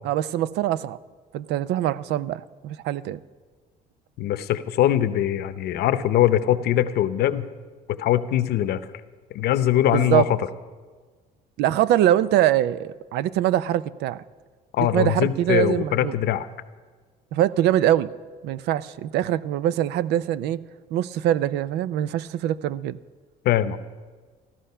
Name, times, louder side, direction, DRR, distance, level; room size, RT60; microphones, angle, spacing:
voice 1, 0.0-1.0 1.3-3.2 9.9-10.2 11.6-14.2 14.8-16.1 17.3-18.1 18.4-20.6 20.9-23.0, right 12 dB, 80° right, 17 dB, 0.5 m, -23 dB
voice 2, 4.2-7.5 7.9-8.8 9.3-10.4 14.7-16.5 23.4-23.8, left 12 dB, 70° left, 13 dB, 0.8 m, -22 dB
15.0 x 12.5 x 5.6 m, 1.4 s
cardioid pair, 110°, 17 cm